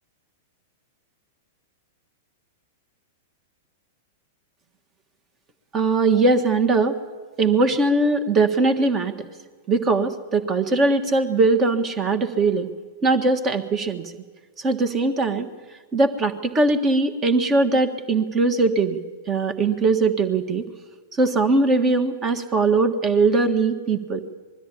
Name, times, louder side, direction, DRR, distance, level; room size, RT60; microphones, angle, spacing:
voice 1, 5.7-7.0 7.4-9.3 9.7-12.7 13.0-14.0 14.6-15.5 15.9-19.0 19.3-20.6 21.2-24.2, right 3 dB, 25° right, 8 dB, 1.6 m, -20 dB
21.0 x 13.0 x 10.0 m, 1.5 s
figure-of-eight pair, 100°, 0 cm